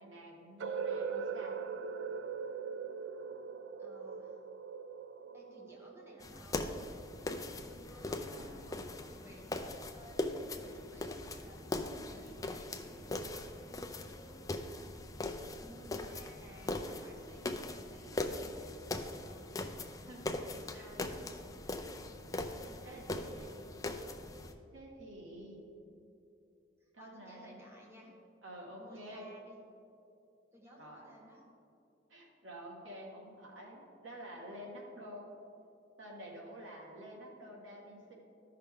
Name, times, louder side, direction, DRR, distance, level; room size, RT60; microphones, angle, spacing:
voice 1, 0.0-1.6 8.2-8.6 10.6-10.7 12.2-12.3 20.0-20.3 20.7-21.1 21.7-22.0 22.8-23.6 24.7-25.6 26.9-27.6 28.4-29.3 30.8-31.1 32.1-35.3 36.0-38.1, equal, 85° right, -1 dB, 1.7 m, -49 dB
sound 1, 0.6-6.5, right 6 dB, 70° right, 0.4 m, -40 dB
voice 2, 3.8-4.4 5.3-6.7 7.6-13.8 14.1-15.1 15.6-19.5 20.7-21.1 22.6-23.5 26.8-28.1 28.8-29.6 30.5-31.5, equal, 15° right, -2 dB, 1.3 m, -57 dB
sound 2, 6.2-24.5, left 2 dB, 20° left, 0.5 m, -41 dB
13.5 x 5.6 x 3.7 m, 2.6 s
head